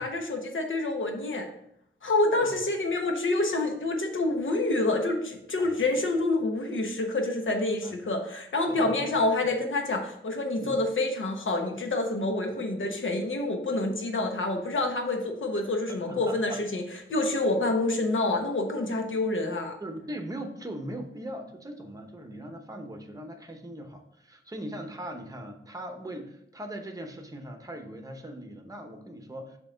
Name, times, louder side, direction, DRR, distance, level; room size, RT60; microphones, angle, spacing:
voice 1, 0.0-1.5 2.0-16.8 17.1-19.7, left 2 dB, 70° left, 3 dB, 1.1 m, -27 dB
voice 2, 8.7-9.0 10.6-10.8 15.9-16.6 19.8-29.6, right 1 dB, 15° right, 4 dB, 0.9 m, -40 dB
6.8 x 2.9 x 5.0 m, 0.73 s
wide cardioid pair, 120°, 21 cm